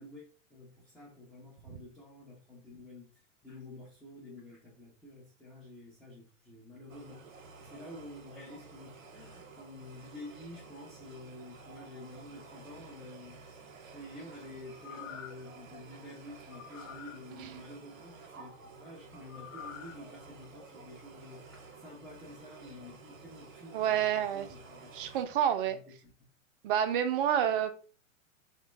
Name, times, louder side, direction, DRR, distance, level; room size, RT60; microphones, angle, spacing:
voice 1, 0.0-24.9 25.6-26.1, left 1 dB, ahead, 0.5 m, -50 dB
sound 1, 6.9-25.3, right 4 dB, 90° right, 0.8 m, -52 dB
sound 2, 14.7-15.5 16.5-17.2 19.3-20.0 20.4-20.5, left 9 dB, 80° left, 0.6 m, -47 dB
voice 2, 23.7-24.5 24.9-25.8 26.6-27.7, right 9 dB, 45° right, 0.5 m, -28 dB
3.1 x 2.1 x 3.0 m
hypercardioid pair, 115°, 39 cm